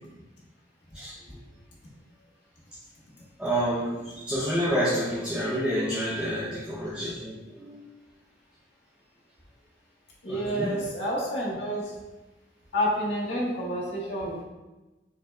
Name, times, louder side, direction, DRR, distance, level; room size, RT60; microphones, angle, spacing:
voice 1, 0.9-1.4 3.4-7.9 10.3-10.8, equal, 5° right, -8 dB, 0.7 m, -29 dB
voice 2, 10.2-11.9 12.7-14.4, equal, 85° left, -6 dB, 1.3 m, -29 dB
6.3 x 3.7 x 2.3 m, 1.1 s
head